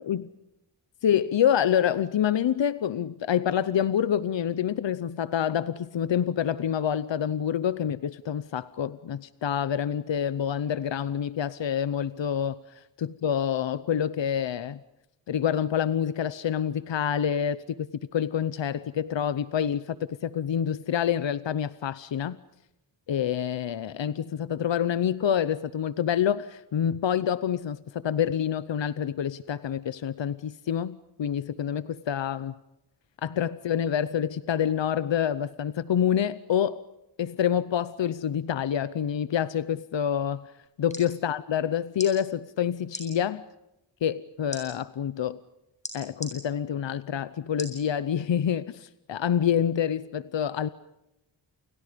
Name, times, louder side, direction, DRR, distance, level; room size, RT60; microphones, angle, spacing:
voice 1, 1.0-14.8 15.3-17.9 18.1-22.4 23.1-32.5 33.2-36.8 37.2-40.5 40.8-43.4 44.0-45.4 45.9-50.7, left 9 dB, 75° left, 0.8 m, -27 dB
sound 1, 40.6-41.1 41.9-42.1 42.9-43.1 44.5-44.6 45.8-46.3 47.6-47.8 48.4-48.5, left 1 dB, 15° left, 7.8 m, -37 dB
30.0 x 29.0 x 5.2 m
wide cardioid pair, 135°, 44 cm